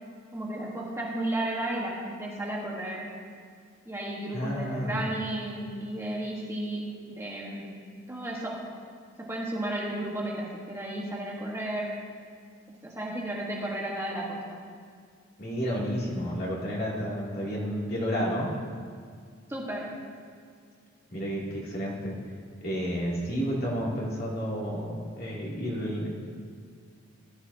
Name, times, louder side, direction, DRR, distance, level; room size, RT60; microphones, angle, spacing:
voice 1, 0.3-3.1 3.8-7.8 8.1-8.6 9.2-12.0 12.8-14.6 19.5-20.0, right 1 dB, 15° right, -4 dB, 1.4 m, -33 dB
voice 2, 4.3-5.0 15.4-18.5 21.1-22.2 22.6-26.1, equal, 50° left, -5 dB, 2.7 m, -31 dB
18.0 x 12.0 x 2.8 m, 2.1 s
head